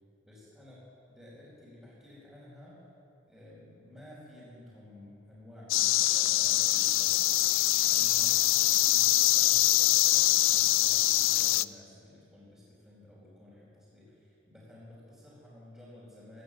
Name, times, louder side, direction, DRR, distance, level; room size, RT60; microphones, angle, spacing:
voice 1, 0.2-2.8 3.3-7.5 7.8-16.4, left 1 dB, 5° right, -11 dB, 4.4 m, -52 dB
sound 1, 5.7-11.6, left 17 dB, 85° left, 0.3 m, -24 dB
17.5 x 10.5 x 7.5 m, 2.7 s
head